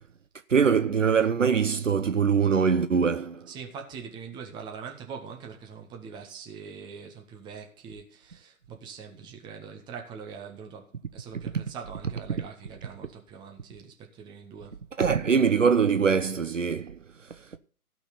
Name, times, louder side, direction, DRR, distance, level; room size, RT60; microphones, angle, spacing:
voice 1, 0.5-3.5 15.0-17.0, right 6 dB, 60° right, 1.0 m, -23 dB
voice 2, 3.5-14.8, right 6 dB, 10° right, 1.6 m, -43 dB
16.5 x 6.0 x 5.9 m
figure-of-eight pair, 135°, 44 cm